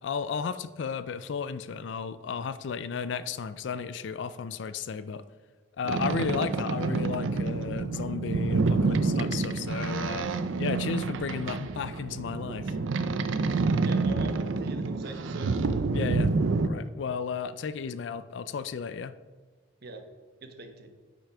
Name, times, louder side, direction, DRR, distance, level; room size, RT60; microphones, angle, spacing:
voice 1, 0.0-5.2 5.8-10.3 10.6-12.7 15.9-16.3 16.6-19.1, left 6 dB, 65° left, 14 dB, 0.4 m, -34 dB
Boat Water vehicle, 5.8-16.7, right 3 dB, 85° right, 0.5 m, -28 dB
voice 2, 13.8-15.5 19.8-20.0 20.4-20.9, right 2 dB, 55° right, 6 dB, 1.0 m, -43 dB
8.8 x 5.7 x 4.8 m, 1.3 s
head